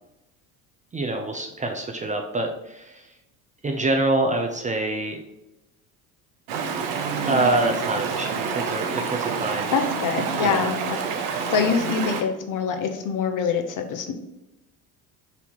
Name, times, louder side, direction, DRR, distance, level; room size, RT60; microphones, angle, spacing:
voice 1, 0.9-3.1 3.6-5.2 7.2-9.7 10.4-10.7, right 2 dB, 15° right, 3 dB, 0.5 m, -26 dB
Stream, 6.5-12.2, right 5 dB, 70° right, 0.8 m, -28 dB
voice 2, 9.7-10.8 11.5-14.1, left 6 dB, 45° left, 7 dB, 0.7 m, -24 dB
4.2 x 2.7 x 4.4 m, 0.91 s
hypercardioid pair, 65°, 45 cm